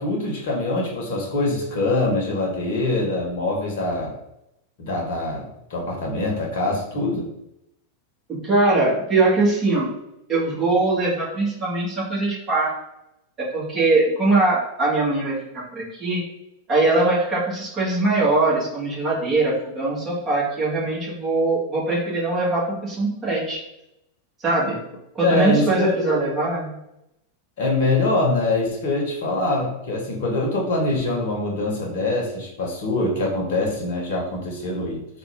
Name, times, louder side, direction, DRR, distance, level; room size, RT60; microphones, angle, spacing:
voice 1, 0.0-4.1 4.8-7.3 25.2-26.1 27.6-35.2, left 2 dB, 55° left, 0 dB, 1.0 m, -24 dB
voice 2, 8.3-9.9 10.3-12.7 13.4-16.2 16.7-23.6 24.4-24.8 25.1-26.7, right 2 dB, 20° right, -6 dB, 1.5 m, -21 dB
3.5 x 2.4 x 3.4 m, 0.84 s
figure-of-eight pair, 90°, 0 cm